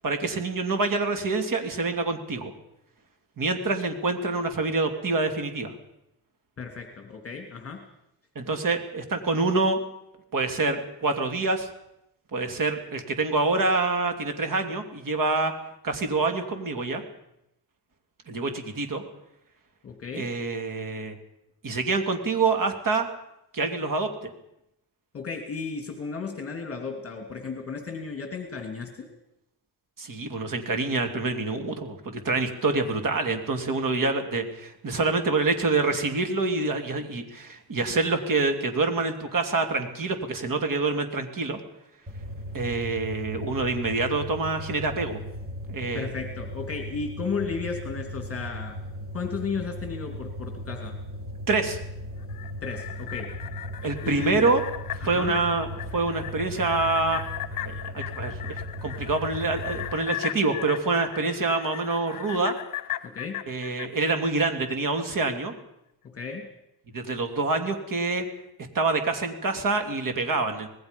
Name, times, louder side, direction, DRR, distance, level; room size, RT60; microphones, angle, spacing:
voice 1, 0.0-2.5 3.4-5.7 8.3-9.8 10.3-11.7 12.3-15.5 15.8-17.0 18.3-19.0 20.1-21.2 21.6-23.1 23.5-24.1 30.0-41.6 42.5-45.2 45.7-46.1 51.5-51.8 53.8-54.6 55.0-57.2 57.6-62.5 63.5-65.5 66.9-68.2 68.7-70.7, right 3 dB, 50° right, 6 dB, 3.0 m, -26 dB
voice 2, 6.6-7.8 19.8-20.3 25.1-29.1 45.9-48.8 49.1-51.0 52.6-53.3 54.0-54.4 55.0-55.4 63.0-63.4 66.0-66.5, left 5 dB, 35° left, 3 dB, 2.8 m, -34 dB
sound 1, 42.1-59.9, equal, 20° right, 4.7 m, -37 dB
sound 2, 52.2-64.8 65.1-65.2, left 13 dB, 50° left, 1.1 m, -38 dB
25.5 x 20.0 x 5.4 m, 0.83 s
cardioid pair, 125°, 42 cm